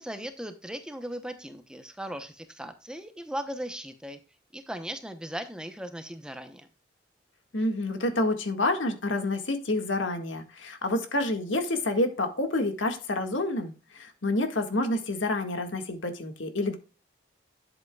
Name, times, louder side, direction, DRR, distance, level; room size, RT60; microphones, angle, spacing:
voice 1, 0.0-4.2 4.5-6.7, equal, 5° right, 8 dB, 0.8 m, -38 dB
voice 2, 7.5-16.8, left 2 dB, 85° left, 6 dB, 1.8 m, -28 dB
11.5 x 7.8 x 2.3 m, 0.33 s
head